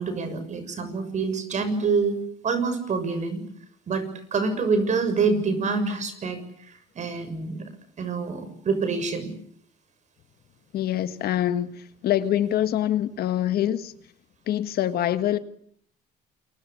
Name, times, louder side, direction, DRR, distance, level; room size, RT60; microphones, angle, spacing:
voice 1, 0.0-2.2 2.4-3.4 3.9-6.4 7.0-7.6 8.0-9.3, right 4 dB, 45° right, 6.8 m, -26 dB
voice 2, 10.7-13.9 14.5-15.4, left 11 dB, 65° left, 1.6 m, -25 dB
28.0 x 22.5 x 8.4 m
cardioid pair, 110°, 17 cm